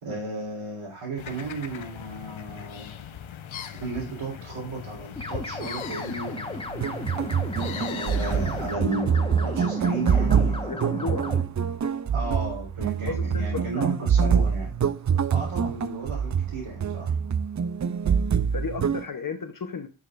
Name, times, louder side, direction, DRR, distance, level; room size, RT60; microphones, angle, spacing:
voice 1, 0.0-2.9 3.8-6.6 7.5-11.4 12.1-14.7 15.3-17.2, right 3 dB, 80° right, -4 dB, 3.6 m, -34 dB
sound 1, 1.2-8.8, left 8 dB, 70° left, 1.0 m, -39 dB
sound 2, 5.2-11.4, left 1 dB, 10° left, 1.2 m, -35 dB
sound 3, 6.7-19.0, right 7 dB, 35° right, 0.5 m, -25 dB
voice 2, 10.7-11.2 13.0-13.9 15.1-15.2 18.5-19.9, left 4 dB, 40° left, 6 dB, 1.0 m, -34 dB
10.0 x 6.4 x 2.5 m, 0.28 s
wide cardioid pair, 80°, 49 cm